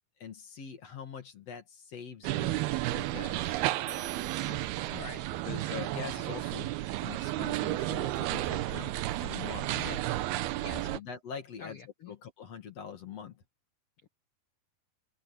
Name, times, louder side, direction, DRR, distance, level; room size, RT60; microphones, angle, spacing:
voice 1, 0.2-2.6 2.9-3.6 4.4-4.7 5.4-10.0 10.7-11.8 12.1-13.4, left 7 dB, 45° left, 2.4 m, -44 dB
sound 1, 2.2-11.0, right 15 dB, 75° right, 2.6 m, -32 dB
sound 2, 3.9-5.5, right 6 dB, 55° right, 3.2 m, -49 dB
voice 2, 4.9-5.6 9.7-10.2 10.6-11.0 11.6-12.2 14.0-14.1, left 5 dB, 75° left, 1.3 m, -47 dB
open air
omnidirectional pair, 4.9 m